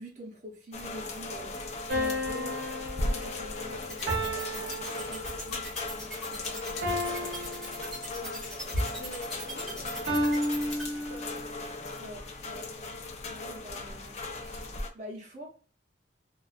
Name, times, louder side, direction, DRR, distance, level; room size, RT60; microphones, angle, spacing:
voice 1, 0.0-1.6 1.9-2.6 3.0-6.6 7.0-7.5 12.0-13.0 13.2-15.5, equal, 40° right, 0.7 m, -46 dB
sound 1, 0.7-14.9, left 2 dB, 40° left, 0.3 m, -38 dB
sound 2, 1.9-5.6 6.8-8.4 10.1-11.6, equal, 85° right, 0.7 m, -33 dB
sound 3, 3.9-10.8, equal, 5° left, 0.8 m, -40 dB
voice 2, 8.0-11.3, left 1 dB, 60° left, 0.9 m, -40 dB
2.3 x 2.2 x 2.4 m
head